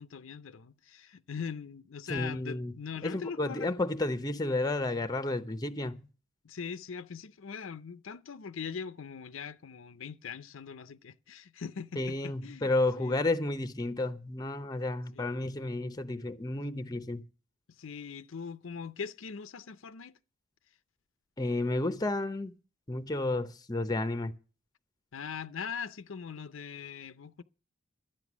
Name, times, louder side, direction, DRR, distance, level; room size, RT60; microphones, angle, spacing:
voice 1, 0.0-3.7 6.4-12.7 13.0-13.2 15.2-15.3 17.7-20.2 25.1-27.4, left 6 dB, 65° left, 0.5 m, -41 dB
voice 2, 2.1-2.7 3.0-6.1 12.0-17.2 21.4-22.5 22.9-24.3, left 2 dB, 20° left, 0.7 m, -31 dB
12.5 x 8.9 x 6.1 m
head